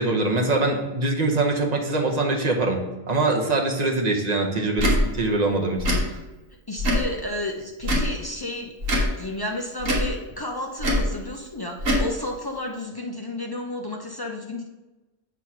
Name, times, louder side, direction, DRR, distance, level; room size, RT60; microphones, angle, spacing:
voice 1, 0.0-2.8 3.1-5.9, right 2 dB, 35° right, 1 dB, 1.0 m, -23 dB
Tick / Tick-tock, 4.8-5.0 5.8-6.0 6.8-7.1 7.8-8.1 8.8-9.1 9.8-10.1 10.8-11.1 11.8-12.1, equal, 65° right, 1.7 m, -22 dB
voice 2, 6.7-8.7 9.2-14.7, left 1 dB, 35° left, -1 dB, 0.3 m, -32 dB
8.1 x 3.1 x 5.7 m, 1.1 s
omnidirectional pair, 1.5 m